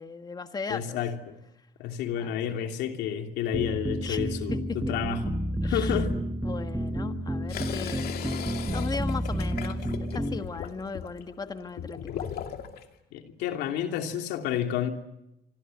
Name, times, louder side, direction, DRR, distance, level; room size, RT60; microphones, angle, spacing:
voice 1, 0.0-1.0 2.2-2.7 4.0-4.8 5.6-6.0 6.4-8.4 8.7-12.3, left 4 dB, 25° left, 8 dB, 1.5 m, -37 dB
voice 2, 0.7-1.4 1.8-5.4 5.6-6.1 13.1-14.9, left 9 dB, 90° left, 4 dB, 2.9 m, -30 dB
sound 1, 3.5-10.4, equal, 10° right, 4.9 m, -30 dB
sound 2, 7.5-12.9, left 9 dB, 65° left, 2.6 m, -38 dB
27.0 x 25.0 x 7.8 m, 0.89 s
cardioid pair, 110°, 17 cm